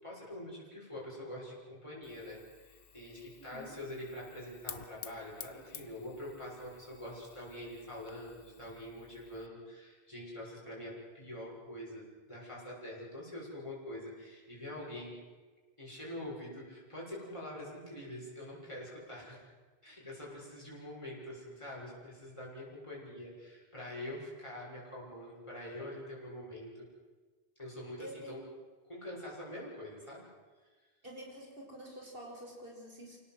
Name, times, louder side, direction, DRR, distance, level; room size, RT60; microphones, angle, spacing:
voice 1, 0.0-15.2 15.8-19.5 19.8-26.9 27.6-28.4 28.8-30.3, left 1 dB, 30° left, -5 dB, 6.9 m, -45 dB
Fire, 2.0-9.5, left 7 dB, 65° left, 1.1 m, -52 dB
voice 2, 3.4-3.8 28.0-28.4 31.0-33.2, equal, 65° right, 0 dB, 5.9 m, -48 dB
26.5 x 18.0 x 7.8 m, 1.4 s
omnidirectional pair, 1.0 m